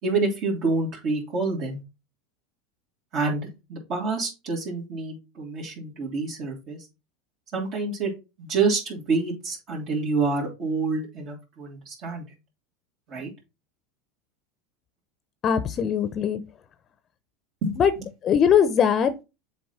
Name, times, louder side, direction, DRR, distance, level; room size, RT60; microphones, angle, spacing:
voice 1, 0.0-1.8 3.1-6.8 7.5-8.1 8.4-12.2 13.1-13.3 17.6-18.0, right 3 dB, 50° right, -3 dB, 2.8 m, -27 dB
voice 2, 15.4-16.4 17.8-17.9 18.2-19.2, left 8 dB, 35° left, 13 dB, 0.7 m, -21 dB
7.0 x 4.2 x 4.3 m, 0.27 s
hypercardioid pair, 105°, 0 cm